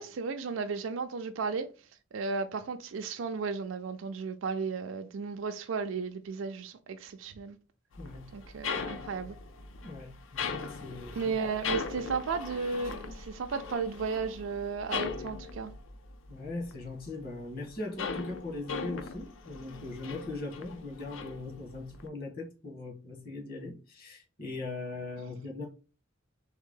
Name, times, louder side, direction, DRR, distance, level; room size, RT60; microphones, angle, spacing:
voice 1, 0.0-1.7 2.1-7.6 8.3-9.4 11.1-15.7, right 5 dB, 70° right, 0.4 m, -34 dB
sound 1, 7.9-17.1 17.4-22.1, left 5 dB, 70° left, 0.5 m, -39 dB
voice 2, 8.0-8.3 9.8-11.3 16.3-25.7, left 2 dB, 50° left, 1.6 m, -40 dB
3.6 x 3.4 x 3.7 m
head